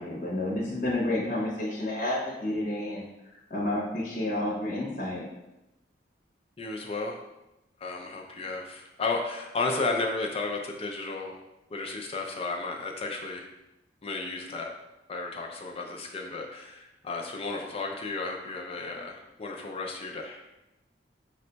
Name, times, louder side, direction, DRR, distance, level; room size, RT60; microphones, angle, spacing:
voice 1, 0.0-5.2, left 1 dB, 45° left, -4 dB, 0.8 m, -30 dB
voice 2, 6.6-7.2 7.8-11.4 11.7-13.5 14.0-14.7 15.1-20.5, left 3 dB, 30° left, 2 dB, 0.4 m, -33 dB
5.2 x 2.2 x 3.9 m, 0.96 s
head